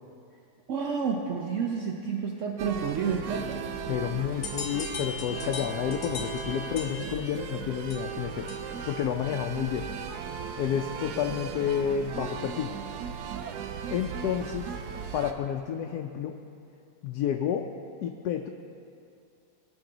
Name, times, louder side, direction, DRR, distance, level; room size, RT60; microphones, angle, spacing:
voice 1, 0.7-3.6, right 6 dB, 60° right, 0 dB, 0.9 m, -30 dB
sound 1, 2.6-15.3, right 7 dB, 90° right, 1.2 m, -37 dB
voice 2, 3.9-8.5 8.9-9.9 10.6-12.7 13.9-14.7 15.1-16.3 17.0-17.6 18.0-18.5, left 9 dB, 90° left, 3 dB, 1.1 m, -30 dB
sound 2, 4.4-8.9, left 5 dB, 60° left, 1.3 m, -40 dB
18.5 x 6.2 x 3.9 m, 2.5 s
omnidirectional pair, 1.6 m